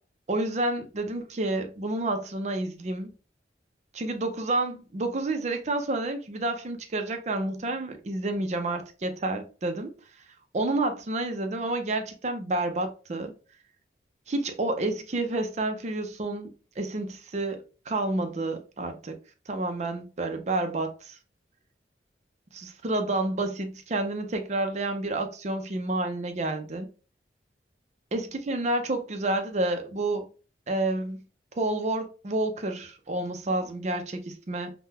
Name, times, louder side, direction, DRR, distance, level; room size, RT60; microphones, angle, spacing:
voice 1, 0.3-3.1 3.9-9.9 10.5-13.3 14.3-19.2 19.5-21.2 22.5-26.9 28.1-30.2 30.7-31.2 31.6-34.7, right 2 dB, 40° right, 0.5 m, -29 dB
3.7 x 2.1 x 2.7 m
head